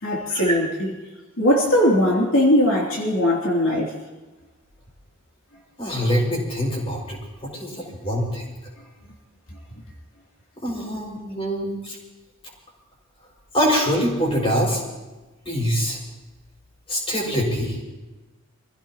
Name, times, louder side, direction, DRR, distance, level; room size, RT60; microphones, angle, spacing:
voice 1, 0.0-0.9 1.4-3.9 9.5-9.6, left 1 dB, 70° left, -3 dB, 3.1 m, -20 dB
voice 2, 5.8-8.4 10.6-12.0 13.5-14.8 15.5-16.0 16.9-17.8, equal, 25° left, -2 dB, 5.6 m, -24 dB
26.5 x 16.0 x 3.0 m, 1.2 s
head